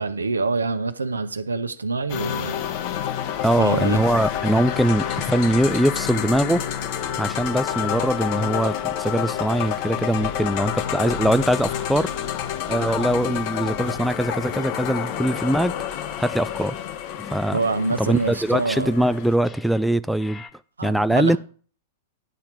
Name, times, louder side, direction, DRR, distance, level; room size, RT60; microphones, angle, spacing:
voice 1, 0.0-2.6 3.6-4.0 17.5-19.1 20.8-21.4, right 3 dB, 80° right, 0.8 m, -26 dB
sound 1, 2.1-19.3, left 10 dB, 45° left, 1.0 m, -28 dB
voice 2, 3.4-6.6 7.2-12.1 12.7-15.7 16.2-16.8 17.3-17.6 18.0-20.4 20.8-21.4, right 1 dB, ahead, 0.3 m, -22 dB
sound 2, 16.1-20.5, left 4 dB, 15° left, 0.8 m, -43 dB
10.5 x 4.4 x 7.2 m
figure-of-eight pair, 100°, 0 cm